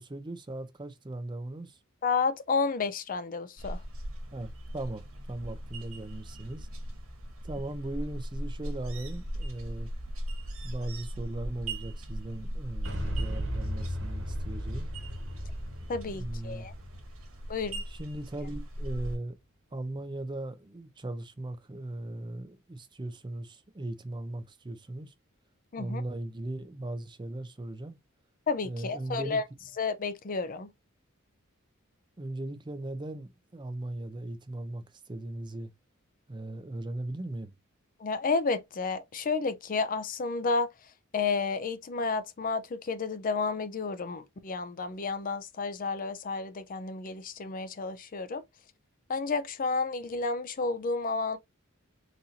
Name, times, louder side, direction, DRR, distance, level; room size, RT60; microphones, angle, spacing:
voice 1, 0.0-1.8 4.3-6.7 7.4-9.9 10.6-14.9 16.1-16.7 17.9-19.4 19.7-25.1 25.8-28.0 28.6-29.4 32.2-35.7 36.3-37.5, right 1 dB, 20° right, 0.5 m, -38 dB
voice 2, 2.0-3.8 15.9-16.7 17.5-17.8 25.7-26.0 28.5-29.4 29.8-30.7 38.0-48.4 49.1-51.4, left 4 dB, 40° left, 0.5 m, -31 dB
sound 1, 3.6-19.2, equal, 85° right, 1.3 m, -38 dB
Boom, 12.8-18.7, equal, 65° right, 1.5 m, -37 dB
4.0 x 2.6 x 2.7 m
head